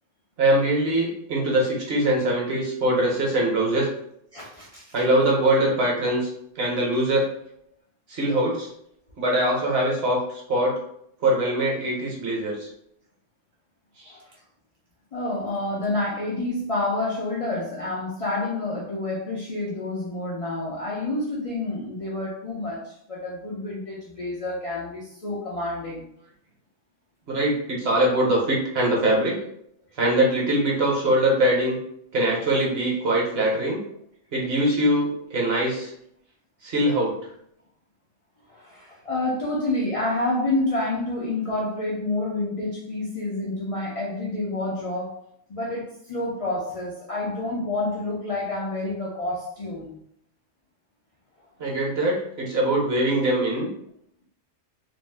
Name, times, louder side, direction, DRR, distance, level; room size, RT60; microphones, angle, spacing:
voice 1, 0.4-3.9 4.9-6.3 6.6-7.3 8.1-8.7 9.2-10.2 10.5-10.8 11.2-12.7 27.3-29.3 30.0-31.8 32.1-33.8 34.3-35.9 36.6-37.1 51.6-53.7, right 1 dB, 55° right, -2 dB, 0.9 m, -22 dB
voice 2, 4.3-4.9 14.1-14.2 15.1-26.1 38.5-45.1 45.5-49.9, left 2 dB, 50° left, -6 dB, 0.4 m, -28 dB
2.6 x 2.1 x 3.2 m, 0.70 s
omnidirectional pair, 1.3 m